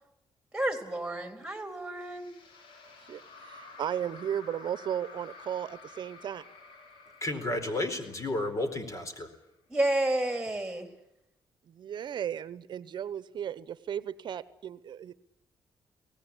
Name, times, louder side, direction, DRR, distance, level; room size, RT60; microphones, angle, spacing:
voice 1, 0.5-2.3 9.7-10.9, right 1 dB, 10° right, 7 dB, 4.0 m, -30 dB
sound 1, 2.0-9.3, left 3 dB, 85° left, 3.4 m, -51 dB
voice 2, 3.0-6.5 11.7-15.1, right 9 dB, 65° right, 16 dB, 0.9 m, -35 dB
voice 3, 7.2-9.3, left 2 dB, 40° left, 9 dB, 4.4 m, -32 dB
23.0 x 18.5 x 9.9 m, 0.88 s
cardioid pair, 80°, 8 cm